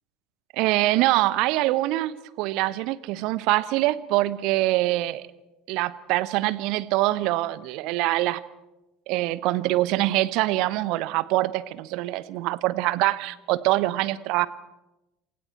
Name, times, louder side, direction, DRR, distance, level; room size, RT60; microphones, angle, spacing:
voice 1, 0.5-5.3 5.7-8.4 9.1-14.5, right 17 dB, 55° right, 18 dB, 0.9 m, -24 dB
28.0 x 27.0 x 4.4 m, 0.95 s
figure-of-eight pair, 65°, 0 cm